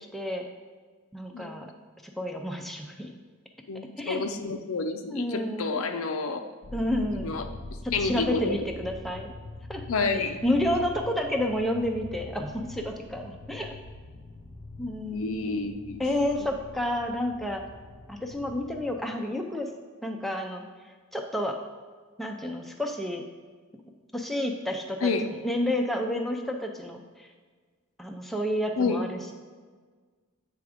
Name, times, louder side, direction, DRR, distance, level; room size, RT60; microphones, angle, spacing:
voice 1, 0.1-0.5 1.1-1.7 2.0-3.1 4.0-4.2 5.1-5.8 6.7-7.3 7.8-9.3 9.7-9.8 10.1-13.7 14.8-15.3 16.0-17.6 18.1-19.7 20.0-20.6 21.1-21.6 22.2-23.2 24.1-25.1 25.4-27.3 28.0-29.3, left 1 dB, ahead, 2 dB, 0.5 m, -30 dB
voice 2, 3.7-6.4 7.1-7.4 7.9-8.6 9.9-10.4 15.0-16.0 25.0-25.3 28.8-29.0, left 4 dB, 65° left, 6 dB, 0.5 m, -29 dB
sound 1, 6.6-19.1, left 2 dB, 40° left, 0.8 m, -43 dB
8.2 x 3.4 x 5.0 m, 1.5 s
head